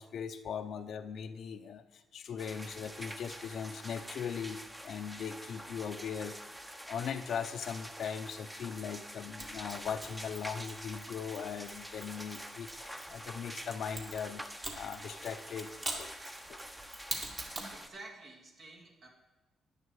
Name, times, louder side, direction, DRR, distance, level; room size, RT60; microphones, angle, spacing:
voice 1, 0.0-6.4 6.9-14.5 14.7-15.7 16.0-16.1 16.5-16.6, left 7 dB, 65° left, 7 dB, 0.7 m, -39 dB
sound 1, 2.4-17.9, equal, 10° right, 0.9 m, -46 dB
Mechanisms, 9.4-13.3 14.0-17.8, right 2 dB, 35° right, 2.2 m, -44 dB
voice 2, 17.7-19.1, right 2 dB, 60° right, -1 dB, 2.5 m, -50 dB
11.0 x 9.9 x 4.8 m, 1.1 s
cardioid pair, 90°, 0 cm